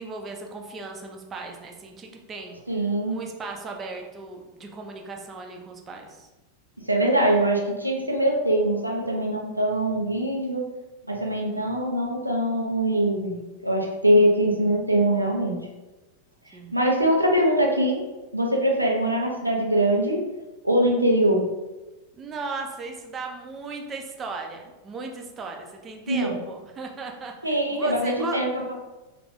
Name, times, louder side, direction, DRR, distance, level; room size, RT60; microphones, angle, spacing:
voice 1, 0.0-2.6 3.1-6.3 14.5-14.8 16.5-16.7 22.2-28.4, right 3 dB, 25° right, 3 dB, 0.5 m, -37 dB
voice 2, 2.7-3.2 6.8-10.7 11.1-15.6 16.7-18.0 18.3-20.2 20.6-21.5 26.1-26.4 27.4-28.7, right 1 dB, 85° right, 0 dB, 0.6 m, -23 dB
3.3 x 2.4 x 3.4 m, 1.1 s
figure-of-eight pair, 90°, 0 cm